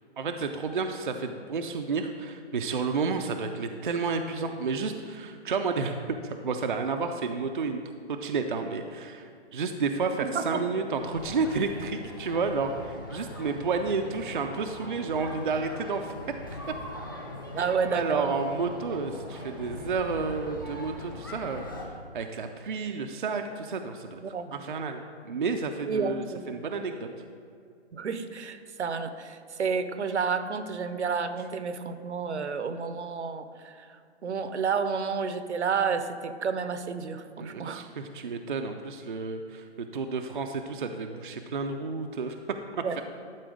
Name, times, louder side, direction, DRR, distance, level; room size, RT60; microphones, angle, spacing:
voice 1, 0.2-7.8 8.1-16.1 16.5-16.6 17.6-24.2 24.5-27.1 37.4-43.0, right 4 dB, 50° right, 5 dB, 0.5 m, -31 dB
voice 2, 10.2-10.6 17.5-18.3 24.2-24.5 25.9-26.5 27.9-37.8 42.8-43.0, right 5 dB, 80° right, 10 dB, 0.8 m, -31 dB
sound 1, 11.0-21.9, left 1 dB, 20° left, 0.6 m, -41 dB
11.5 x 4.4 x 4.8 m, 2.3 s
hypercardioid pair, 175°, 34 cm